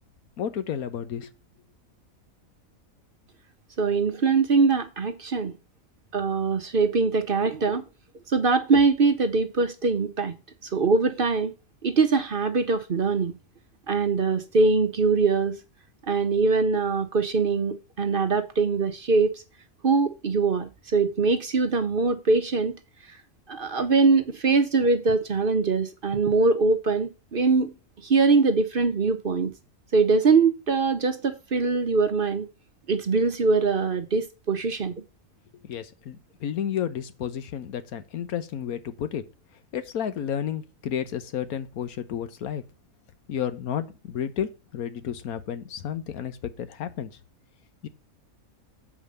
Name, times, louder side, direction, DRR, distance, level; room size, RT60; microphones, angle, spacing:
voice 1, 0.4-1.3 35.6-39.2 39.7-42.6 43.3-47.2 47.8-47.9, left 9 dB, 90° left, 1.4 m, -31 dB
voice 2, 3.8-5.5 6.1-7.8 8.3-10.3 10.6-11.5 11.8-13.3 13.9-15.5 16.1-19.3 19.8-22.8 23.5-27.7 28.0-29.5 29.9-32.5 32.9-35.0, right 4 dB, 45° right, 0.9 m, -22 dB
7.5 x 5.2 x 6.5 m
omnidirectional pair, 1.5 m